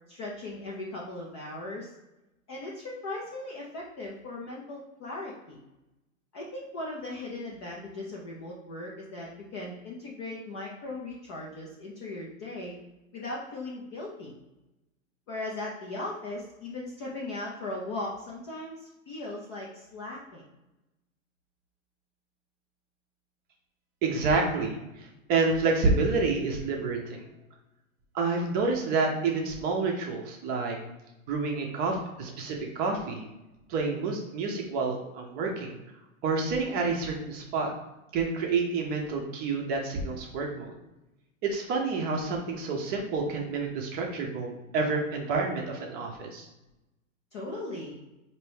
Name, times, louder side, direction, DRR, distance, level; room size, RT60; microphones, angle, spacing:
voice 1, 0.1-1.9 2.5-5.6 6.3-12.8 13.1-14.3 15.3-20.5 47.3-48.0, left 2 dB, 25° left, -4 dB, 0.3 m, -38 dB
voice 2, 24.0-24.8 25.3-27.2 28.1-30.8 31.3-33.3 33.7-35.8 36.2-37.7 38.1-40.7 41.4-46.5, right 4 dB, 25° right, 1 dB, 0.6 m, -28 dB
4.4 x 2.6 x 3.3 m, 0.97 s
hypercardioid pair, 125°, 41 cm